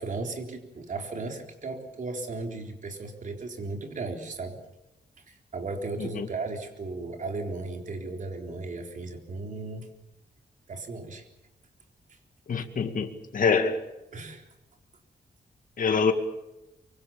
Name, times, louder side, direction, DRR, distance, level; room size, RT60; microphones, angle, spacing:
voice 1, 0.0-4.6 5.3-9.9 10.7-11.3 12.1-12.2 14.1-14.5, right 3 dB, 50° right, 3.8 m, -36 dB
voice 2, 12.5-13.8 15.8-16.1, left 5 dB, 50° left, 2.2 m, -25 dB
24.5 x 24.0 x 7.2 m
wide cardioid pair, 150°, 17 cm